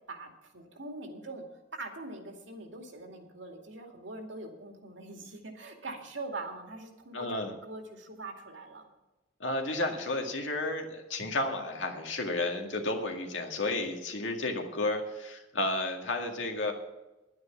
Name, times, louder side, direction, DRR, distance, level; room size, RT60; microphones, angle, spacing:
voice 1, 0.1-1.4 1.7-8.9, right 2 dB, 85° right, 3 dB, 2.3 m, -43 dB
voice 2, 7.1-7.5 9.4-16.7, left 2 dB, 85° left, 3 dB, 2.0 m, -32 dB
11.0 x 9.6 x 7.3 m, 1.0 s
head